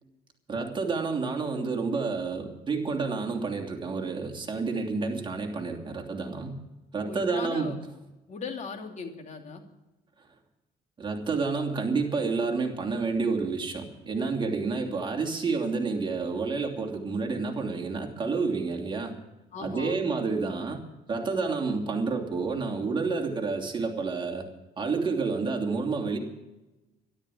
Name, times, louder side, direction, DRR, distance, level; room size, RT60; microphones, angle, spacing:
voice 1, 0.5-6.6 6.9-7.7 11.0-19.1 19.6-20.8 21.1-24.4 24.8-26.2, right 4 dB, 30° right, 3 dB, 3.0 m, -29 dB
voice 2, 7.0-7.8 8.3-9.6 19.5-20.0, left 4 dB, 45° left, 3 dB, 2.9 m, -38 dB
12.5 x 12.0 x 8.4 m, 1.0 s
cardioid pair, 110°, 17 cm